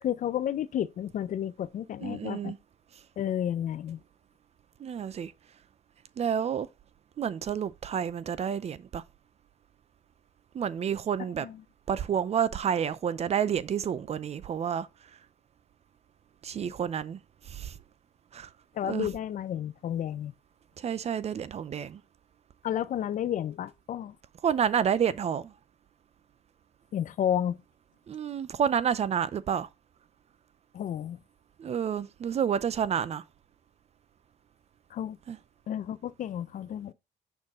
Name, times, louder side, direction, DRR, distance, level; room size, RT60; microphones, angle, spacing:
voice 1, 0.0-2.5 3.2-4.0 11.4-11.6 18.7-20.3 22.6-24.2 26.9-27.6 30.7-31.2 34.9-35.2 35.7-36.9, left 10 dB, 50° left, 0.6 m, -31 dB
voice 2, 2.0-2.6 4.8-5.3 6.2-6.7 7.2-9.0 10.5-11.5 11.9-14.9 16.4-17.2 17.5-17.7 18.3-18.5 18.9-19.1 20.8-22.0 24.4-25.5 28.1-29.7 31.6-33.2 35.3-35.4, right 8 dB, 40° right, 0.6 m, -29 dB
6.5 x 5.8 x 3.7 m
cardioid pair, 110°, 17 cm